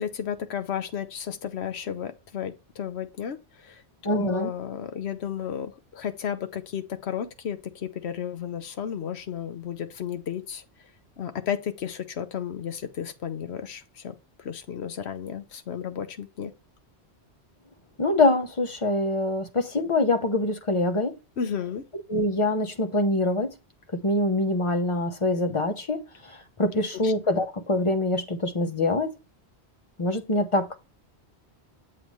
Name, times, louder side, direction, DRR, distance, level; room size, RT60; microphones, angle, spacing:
voice 1, 0.0-10.6 11.2-16.5 21.4-21.9 27.0-27.1, left 8 dB, 75° left, 1.1 m, -33 dB
voice 2, 4.0-4.5 18.0-21.1 22.1-23.5 23.9-29.1 30.0-30.8, left 2 dB, 30° left, 0.8 m, -24 dB
7.7 x 3.1 x 5.3 m
omnidirectional pair, 1.1 m